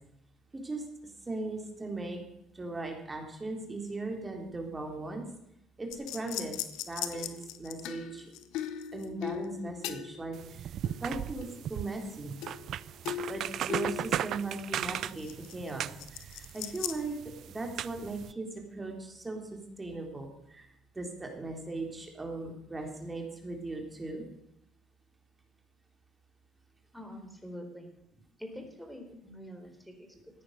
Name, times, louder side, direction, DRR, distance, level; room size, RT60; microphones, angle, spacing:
voice 1, 0.5-0.8 1.3-2.2 2.5-5.2 5.8-6.6 6.8-8.3 8.9-10.6 11.0-12.4 13.3-15.9 16.1-17.2 17.4-20.7 20.9-24.3, right 2 dB, 20° right, 2 dB, 3.6 m, -38 dB
sound 1, 5.9-10.4 10.8-11.7 12.4-12.8 13.0-15.7 16.0-17.0, left 10 dB, 80° left, 0.9 m, -39 dB
sound 2, 10.3-18.3, right 11 dB, 60° right, 0.4 m, -37 dB
voice 2, 26.9-30.4, equal, ahead, 4 dB, 4.0 m, -46 dB
14.5 x 9.5 x 6.7 m, 0.79 s
supercardioid pair, 75°, 0 cm